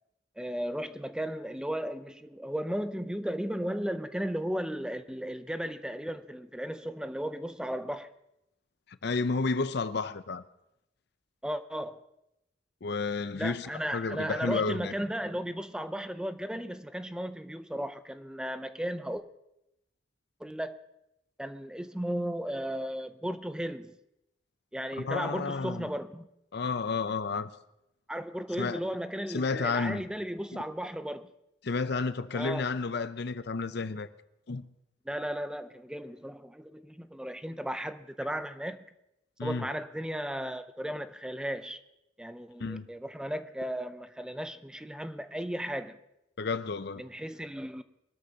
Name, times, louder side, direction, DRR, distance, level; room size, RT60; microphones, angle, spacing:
voice 1, 0.4-8.1 11.4-12.0 13.3-19.2 20.4-20.8 21.4-24.0 24.7-26.3 28.1-31.3 32.3-32.7 35.1-38.8 39.4-41.8 42.2-46.0 47.0-47.8, equal, 5° right, 0.5 m, -35 dB
voice 2, 9.0-10.4 12.8-14.9 25.0-25.9 26.5-27.5 28.6-29.0 29.3-30.0 31.6-34.1 34.5-34.6 39.4-39.7 42.6-42.9 46.4-47.0, left 4 dB, 65° left, 0.6 m, -31 dB
23.5 x 13.0 x 2.8 m
head